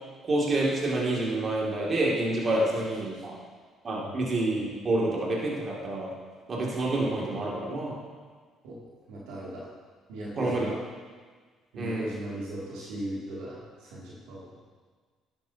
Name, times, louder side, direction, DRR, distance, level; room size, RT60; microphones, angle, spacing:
voice 1, 0.2-3.4 3.8-6.1 6.5-8.0 10.4-10.7 11.8-12.1, right 2 dB, 45° right, -4 dB, 2.4 m, -28 dB
voice 2, 9.1-9.7 10.1-10.8 11.7-14.5, right 1 dB, 80° right, -6 dB, 2.5 m, -38 dB
11.0 x 8.6 x 2.8 m, 1.5 s
hypercardioid pair, 60°, 0 cm